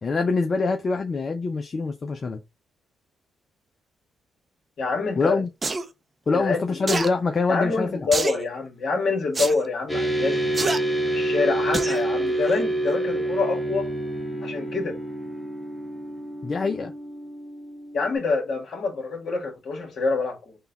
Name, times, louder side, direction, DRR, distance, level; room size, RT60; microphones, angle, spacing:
voice 1, 0.0-2.4 5.2-5.5 6.3-8.1 16.4-16.9, left 4 dB, 45° left, 0.5 m, -24 dB
voice 2, 4.8-5.4 6.3-7.0 7.5-10.5 11.0-13.9 14.4-15.0 17.9-20.6, left 4 dB, 60° left, 1.7 m, -26 dB
sound 1, 5.6-5.8 6.9-7.1 8.1-8.4 9.3-9.6 10.5-10.8 11.7-12.0 12.5-12.6, right 3 dB, 35° right, 0.6 m, -26 dB
sound 2, 9.9-18.2, right 1 dB, ahead, 1.4 m, -28 dB
3.8 x 2.3 x 3.9 m
supercardioid pair, 60°, 0 cm